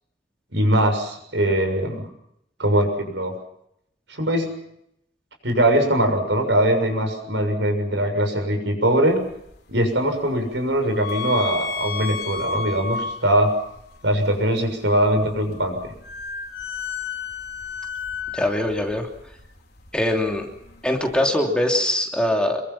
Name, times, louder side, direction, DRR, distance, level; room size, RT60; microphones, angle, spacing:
voice 1, 0.5-2.0 2.6-3.3 4.1-4.5 5.4-9.2 9.7-13.5 14.0-15.8, right 1 dB, 75° right, 5 dB, 6.9 m, -21 dB
sound 1, 9.0-21.2, left 5 dB, 60° left, 4.6 m, -34 dB
voice 2, 18.3-19.1 19.9-20.5 20.8-22.6, left 1 dB, 5° left, 2 dB, 3.0 m, -22 dB
27.5 x 23.5 x 5.8 m, 0.77 s
head